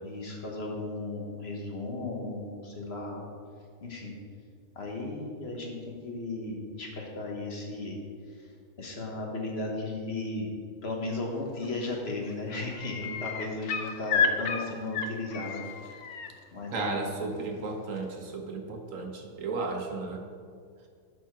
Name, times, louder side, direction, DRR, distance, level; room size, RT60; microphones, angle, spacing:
voice 1, 0.0-3.2 3.8-4.2 4.8-8.0 8.8-10.5 10.8-15.7 16.5-16.9, left 2 dB, 50° left, -1 dB, 1.4 m, -35 dB
sound 1, 11.6-12.0 12.2-16.3 18.0-18.1, left 6 dB, 85° left, 1.2 m, -31 dB
voice 2, 16.7-20.2, right 3 dB, 65° right, 3 dB, 1.3 m, -34 dB
12.0 x 4.7 x 4.6 m, 2.2 s
omnidirectional pair, 1.5 m